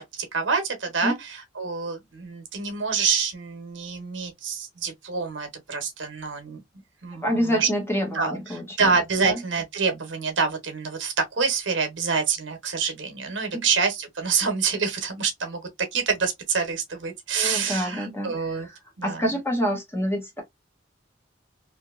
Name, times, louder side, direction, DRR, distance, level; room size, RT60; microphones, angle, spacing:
voice 1, 0.2-6.6 7.0-7.7 8.1-15.6 15.9-18.7 19.0-19.3, right 5 dB, 80° right, 1.0 m, -27 dB
voice 2, 7.2-9.4 13.5-13.6 17.4-18.7 19.0-20.4, equal, 15° left, 1.1 m, -27 dB
2.7 x 2.7 x 2.4 m
head